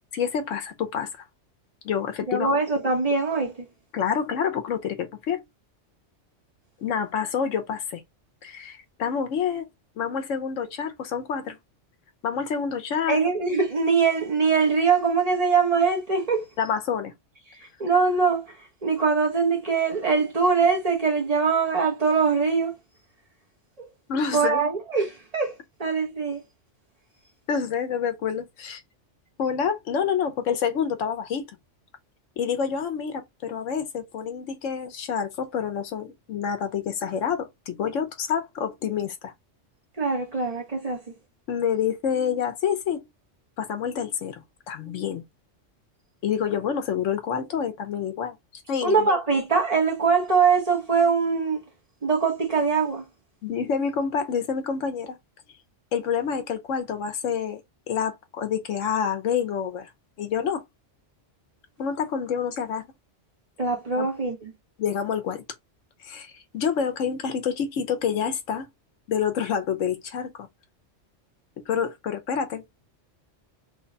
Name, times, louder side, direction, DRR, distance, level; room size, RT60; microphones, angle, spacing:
voice 1, 0.1-1.1 1.8-2.5 3.9-5.4 6.8-8.0 8.4-9.7 10.0-11.6 12.2-13.3 16.6-17.1 24.1-24.6 27.5-28.8 29.4-31.4 32.4-39.3 41.5-43.1 43.6-45.2 46.2-49.1 53.4-55.2 55.9-57.6 57.9-59.9 60.2-60.6 61.8-62.8 64.0-64.1 64.8-65.4 66.0-68.7 69.1-70.5 71.6-72.6, left 7 dB, 85° left, 1.1 m, -28 dB
voice 2, 2.3-3.5 13.1-16.4 17.8-18.4 18.8-22.7 23.8-23.9 24.3-26.4 40.0-41.0 48.8-51.6 52.0-53.0 63.6-64.5, right 5 dB, 35° right, 1.0 m, -22 dB
3.3 x 2.2 x 3.8 m
omnidirectional pair, 1.3 m